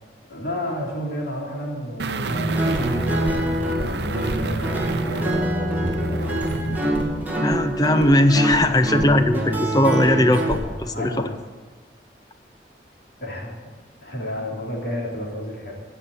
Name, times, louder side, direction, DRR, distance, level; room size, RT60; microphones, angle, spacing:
voice 1, 0.3-6.5 10.5-11.4 13.2-13.5 14.0-15.7, equal, 70° left, -2 dB, 3.0 m, -32 dB
sound 1, 2.0-6.9 7.2-7.3, right 3 dB, 75° right, 0.7 m, -30 dB
Guitar, 2.3-10.6, right 1 dB, 10° right, 1.9 m, -25 dB
voice 2, 7.4-11.3, left 1 dB, 20° left, 9 dB, 0.5 m, -19 dB
16.0 x 5.6 x 7.8 m, 1.4 s
head